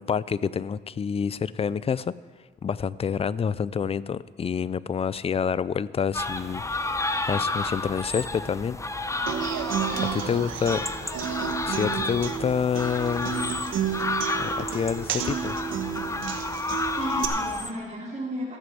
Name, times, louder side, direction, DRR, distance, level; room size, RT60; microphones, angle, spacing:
voice 1, 0.0-2.1 2.6-6.9 7.3-8.8 10.3-10.9 11.7-13.6 14.4-15.6, left 7 dB, 30° left, 19 dB, 0.4 m, -28 dB
sound 1, 6.1-17.7, left 2 dB, 15° left, 0.8 m, -31 dB
Human voice / Acoustic guitar, 9.3-17.2, right 9 dB, 85° right, 1.2 m, -31 dB
voice 2, 9.9-10.8 17.0-18.6, equal, 35° right, -6 dB, 3.2 m, -35 dB
13.5 x 7.9 x 7.7 m, 1.5 s
cardioid pair, 90°, 20 cm